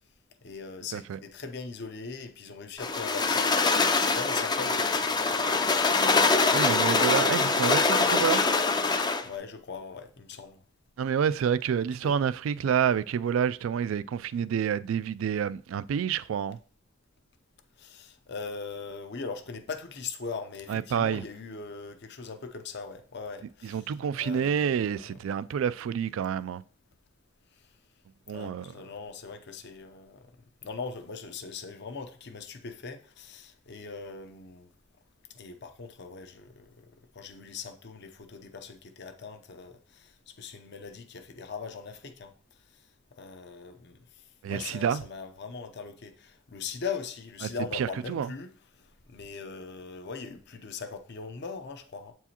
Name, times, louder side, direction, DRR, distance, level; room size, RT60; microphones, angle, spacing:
voice 1, 0.4-5.6 9.2-10.6 12.0-12.2 17.8-25.0 27.5-27.7 28.3-30.3 30.6-34.7 35.3-42.9 43.2-48.5 48.7-52.1, left 5 dB, 60° left, 0.7 m, -40 dB
sound 1, 2.8-9.3, left 4 dB, 20° left, 0.4 m, -24 dB
voice 2, 6.5-8.4 11.0-16.6 20.7-21.2 23.6-26.6 28.3-28.7 44.4-45.0 47.4-48.3, right 7 dB, 75° right, 0.3 m, -28 dB
7.9 x 4.7 x 2.9 m
head